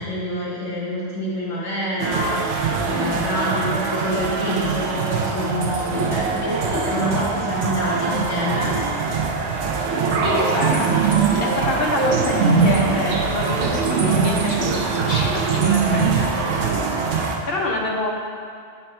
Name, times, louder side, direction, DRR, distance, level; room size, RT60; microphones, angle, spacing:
voice 1, 0.0-8.7, equal, 85° left, -8 dB, 1.6 m, -26 dB
sound 1, 2.0-17.4, right 5 dB, 70° right, 0.9 m, -22 dB
voice 2, 9.9-10.9 11.4-16.3 17.5-18.1, left 2 dB, 50° left, -2 dB, 0.9 m, -26 dB
6.9 x 4.3 x 4.3 m, 2.2 s
omnidirectional pair, 1.3 m